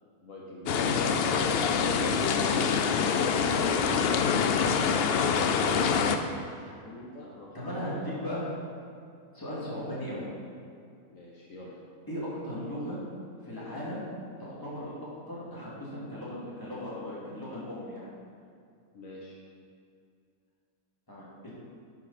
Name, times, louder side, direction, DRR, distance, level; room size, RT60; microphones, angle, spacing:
voice 1, 0.2-1.6 4.9-8.3 11.1-11.7 18.9-19.4, left 1 dB, 60° left, -4 dB, 1.4 m, -44 dB
sound 1, 0.7-6.2, left 6 dB, 80° left, 0.5 m, -25 dB
voice 2, 7.5-8.5 9.3-10.3 12.1-13.0 13.4-14.1 14.4-18.1 21.1-21.5, equal, 15° left, -8 dB, 2.4 m, -38 dB
9.8 x 6.4 x 4.2 m, 2.4 s
omnidirectional pair, 1.6 m